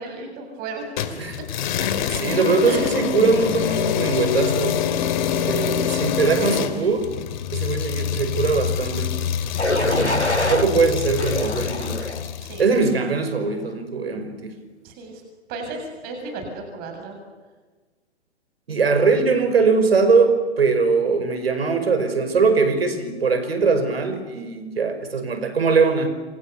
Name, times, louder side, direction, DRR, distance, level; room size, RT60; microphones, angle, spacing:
voice 1, 0.0-1.2 2.6-3.0 5.3-5.9 9.6-10.5 12.4-12.7 14.8-15.2 15.5-17.2, right 3 dB, 30° right, 3 dB, 7.4 m, -35 dB
sound 1, 1.0-12.7, left 9 dB, 45° left, 2.4 m, -25 dB
voice 2, 2.1-4.8 5.4-7.1 7.5-9.1 9.8-12.0 12.6-14.5 18.7-26.1, right 4 dB, 65° right, 9 dB, 5.4 m, -21 dB
sound 2, 9.6-10.7 11.2-12.2 12.8-13.2, left 1 dB, 90° left, 2.9 m, -25 dB
28.5 x 27.0 x 6.9 m, 1.3 s
figure-of-eight pair, 115°, 33 cm